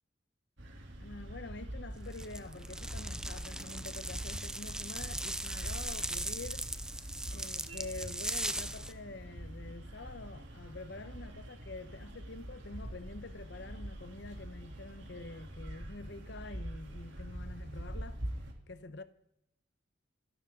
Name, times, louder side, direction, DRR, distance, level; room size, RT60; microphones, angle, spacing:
sound 1, 0.6-18.5, equal, 70° right, 3.2 m, -44 dB
voice 1, 1.0-6.7 7.3-18.2 18.7-19.0, left 2 dB, 60° left, 1.0 m, -47 dB
sound 2, 2.1-8.9, right 1 dB, 5° right, 0.5 m, -39 dB
27.5 x 11.5 x 3.9 m
head